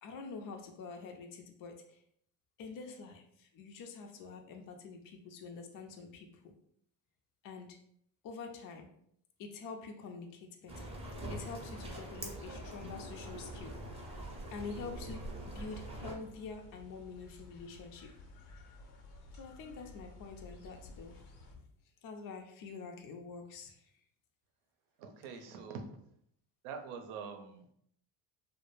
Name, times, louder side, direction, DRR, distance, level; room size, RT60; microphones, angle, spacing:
voice 1, 0.0-2.0 2.6-6.5 7.4-7.8 8.2-8.9 9.4-10.9 11.3-13.8 14.5-15.3 15.5-18.1 19.4-21.2 22.0-23.9, left 4 dB, 45° left, 3 dB, 0.5 m, -46 dB
sound 1, 10.7-16.1, right 1 dB, 15° right, 0.6 m, -44 dB
sound 2, 11.7-21.6, left 2 dB, 75° left, 0.8 m, -55 dB
voice 2, 25.0-25.9 26.6-27.7, right 5 dB, 75° right, 6 dB, 0.6 m, -44 dB
2.2 x 2.1 x 3.1 m, 0.69 s
supercardioid pair, 85°, 49 cm